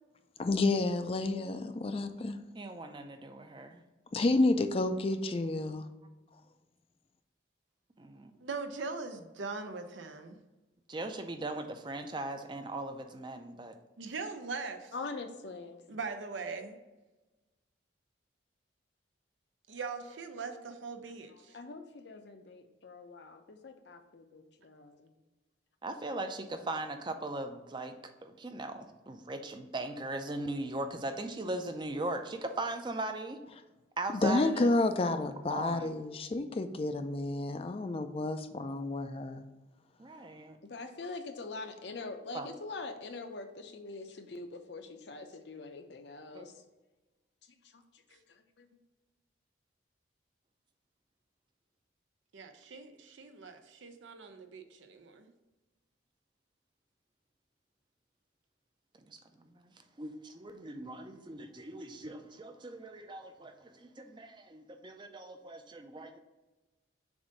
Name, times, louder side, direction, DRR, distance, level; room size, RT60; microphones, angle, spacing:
voice 1, 0.4-2.4 4.1-5.9 34.2-39.4, left 2 dB, 30° left, 8 dB, 0.4 m, -30 dB
voice 2, 2.5-3.8 8.0-8.3 10.9-13.7 25.8-27.9 28.2-33.4 34.0-34.7 35.5-35.9 40.0-40.6 42.3-42.5 46.3-46.4 59.1-59.7 60.0-66.2, right 2 dB, 25° right, 7 dB, 0.5 m, -39 dB
voice 3, 8.4-10.4 14.0-14.9 15.9-16.8 19.7-21.6 52.3-55.3, right 4 dB, 80° right, 7 dB, 0.7 m, -41 dB
voice 4, 14.9-15.8 21.5-25.1 40.7-46.5 47.7-47.8 48.1-48.7, left 3 dB, 65° left, 6 dB, 0.7 m, -44 dB
7.0 x 2.7 x 5.2 m, 1.1 s
head